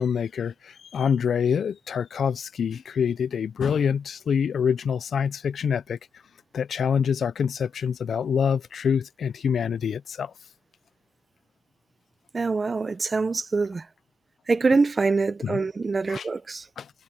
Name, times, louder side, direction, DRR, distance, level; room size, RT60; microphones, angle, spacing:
voice 1, 0.0-6.0 6.5-10.3 15.4-15.6 16.1-16.3 16.8-16.9, left 7 dB, 40° left, 0.3 m, -26 dB
voice 2, 12.3-13.9 14.5-16.6, right 4 dB, 20° right, 0.6 m, -24 dB
cardioid pair, 165°, 0 cm